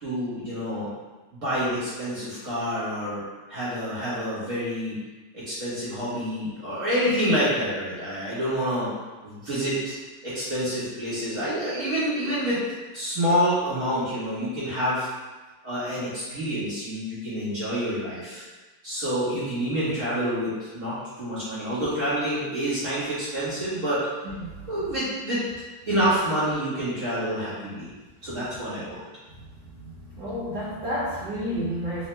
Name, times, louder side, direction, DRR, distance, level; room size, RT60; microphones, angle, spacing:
voice 1, 0.0-0.9 1.3-3.2 3.5-5.0 5.3-8.9 9.2-9.9 10.2-12.6 12.9-15.1 15.6-18.4 18.8-24.0 24.7-25.4 25.9-27.9 28.2-29.0, equal, 45° right, -10 dB, 1.3 m, -27 dB
voice 2, 29.7-32.1, equal, 65° right, -8 dB, 1.2 m, -31 dB
3.4 x 2.8 x 3.2 m, 1.2 s
omnidirectional pair, 2.4 m